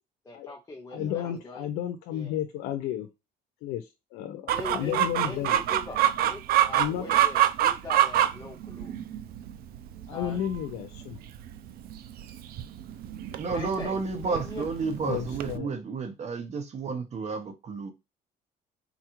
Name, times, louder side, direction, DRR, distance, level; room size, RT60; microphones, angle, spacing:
voice 1, 0.2-1.7 2.1-2.3 4.5-8.9 10.1-10.4 13.5-14.7, left 2 dB, 20° left, 0.6 m, -41 dB
voice 2, 0.9-3.1 3.6-5.6 6.7-7.1 10.1-11.2 15.0-15.8, left 11 dB, 90° left, 0.4 m, -33 dB
Chicken rooster, 4.5-15.6, right 12 dB, 65° right, 0.4 m, -27 dB
voice 3, 13.4-17.9, right 4 dB, 40° right, 0.8 m, -32 dB
3.9 x 2.4 x 2.9 m
cardioid pair, 110°, 17 cm